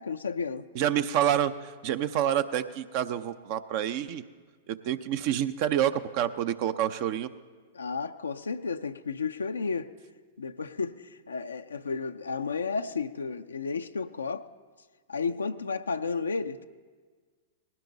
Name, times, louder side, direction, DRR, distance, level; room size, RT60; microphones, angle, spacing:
voice 1, 0.0-0.7 7.7-9.9 10.4-14.4 15.1-16.7, left 4 dB, 85° left, 7 dB, 0.5 m, -32 dB
voice 2, 0.7-4.2 4.7-7.3, right 10 dB, 50° right, 11 dB, 0.6 m, -28 dB
19.0 x 17.0 x 4.0 m, 1.5 s
hypercardioid pair, 110°, 0 cm